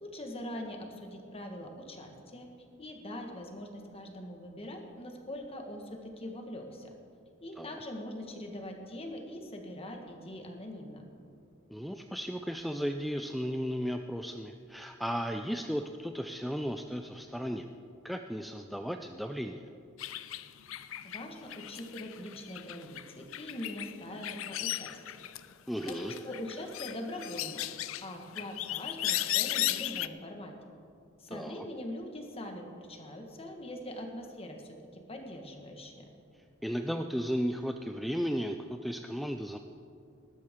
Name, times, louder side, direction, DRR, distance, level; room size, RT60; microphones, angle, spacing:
voice 1, 0.0-2.5 2.8-6.9 7.4-11.1 21.0-25.2 25.8-27.7 28.0-30.5 31.2-36.0, left 1 dB, 30° left, 3 dB, 1.5 m, -42 dB
voice 2, 11.7-17.7 18.0-19.6 25.7-26.1 31.3-31.6 36.6-39.6, equal, ahead, 5 dB, 0.3 m, -35 dB
sound 1, 20.0-25.5 25.8-30.1, left 14 dB, 85° left, 0.5 m, -36 dB
19.0 x 12.0 x 3.7 m, 2.5 s
head